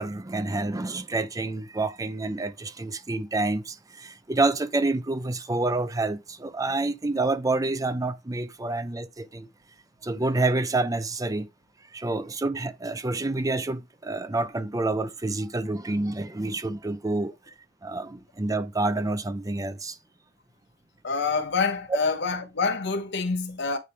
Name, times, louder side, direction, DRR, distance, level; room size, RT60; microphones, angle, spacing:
voice 1, 0.0-9.5 10.0-11.5 11.9-17.3 17.8-20.0, right 2 dB, 20° right, 0.5 m, -28 dB
voice 2, 21.0-23.8, left 4 dB, 60° left, 1.0 m, -26 dB
8.3 x 3.5 x 4.4 m
head